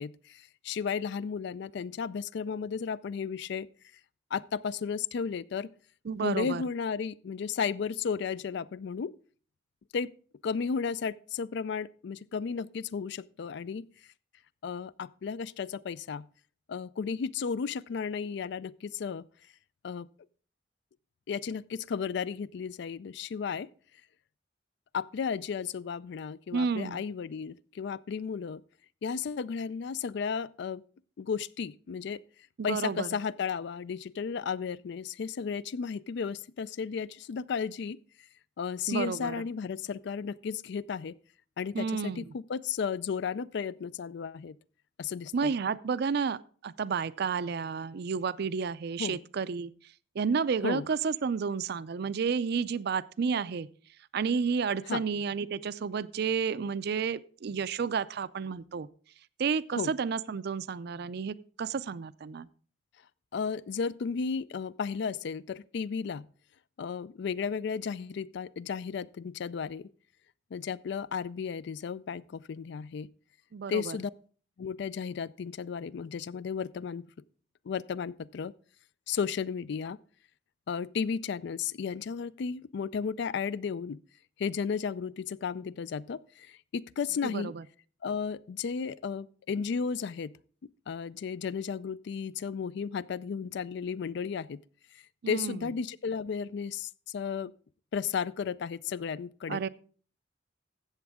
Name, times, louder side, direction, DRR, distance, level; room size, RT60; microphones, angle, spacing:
voice 1, 0.0-3.7 4.3-5.7 6.2-9.1 9.9-10.1 10.4-13.9 14.6-16.2 16.7-19.2 19.8-20.1 21.3-23.7 24.9-28.6 29.0-30.8 31.2-32.2 32.6-38.0 38.6-41.2 41.6-44.5 45.0-45.5 49.0-49.2 50.6-50.8 54.9-55.0 59.8-59.9 63.3-66.2 66.8-69.9 70.5-73.1 73.7-74.1 74.6-77.0 77.7-78.5 79.1-80.0 80.7-84.0 84.4-87.5 88.0-90.3 90.9-94.6 95.3-97.5 97.9-99.6, left 6 dB, 65° left, 0.4 m, -34 dB
voice 2, 6.1-6.6 26.5-27.0 32.6-33.1 38.9-39.3 41.7-42.3 45.3-49.7 50.1-53.7 54.1-58.9 59.4-62.5 73.5-74.0 87.2-87.6 95.2-95.7 99.5-99.7, right 5 dB, 60° right, 0.4 m, -31 dB
13.5 x 8.1 x 3.6 m
head